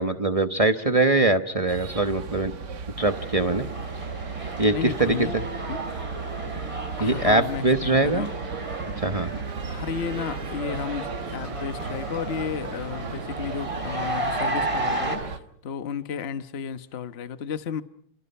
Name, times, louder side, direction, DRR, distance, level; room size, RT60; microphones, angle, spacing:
voice 1, 0.0-2.5 3.0-3.6 4.6-5.2 7.0-8.3 9.0-9.4, right 2 dB, 35° right, 8 dB, 0.6 m, -22 dB
sound 1, 1.7-15.4, right 5 dB, 55° right, 2.1 m, -35 dB
sound 2, 3.0-15.2, right 2 dB, 15° right, 4.4 m, -34 dB
voice 2, 4.7-5.3 5.7-5.8 7.0-8.3 9.7-17.8, left 7 dB, 40° left, 11 dB, 1.1 m, -33 dB
29.5 x 27.0 x 5.6 m, 0.65 s
omnidirectional pair, 2.3 m